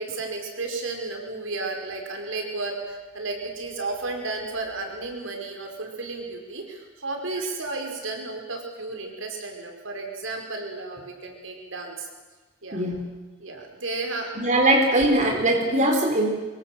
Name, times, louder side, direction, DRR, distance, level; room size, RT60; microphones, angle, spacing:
voice 1, 0.0-12.1 12.6-12.8 13.4-14.3, right 3 dB, 85° right, 3 dB, 5.1 m, -33 dB
voice 2, 12.7-13.0 14.4-16.3, right 1 dB, 40° right, 1 dB, 4.1 m, -21 dB
24.0 x 23.0 x 7.8 m, 1.3 s
head